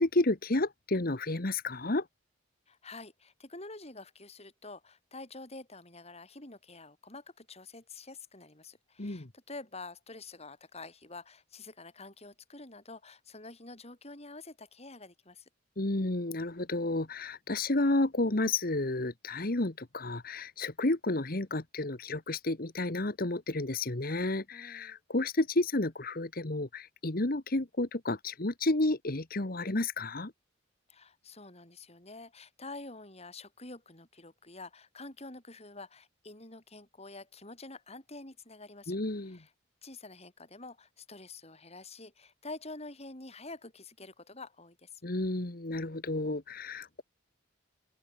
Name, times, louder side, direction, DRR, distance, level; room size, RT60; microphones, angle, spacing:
voice 1, 0.0-2.0 9.0-9.3 15.8-30.3 38.9-39.4 45.0-47.0, left 2 dB, 50° left, 1.5 m, -31 dB
voice 2, 2.7-15.5 24.5-25.0 30.9-39.0 39.2-39.5 39.8-45.0, left 3 dB, 35° left, 5.8 m, -48 dB
open air
head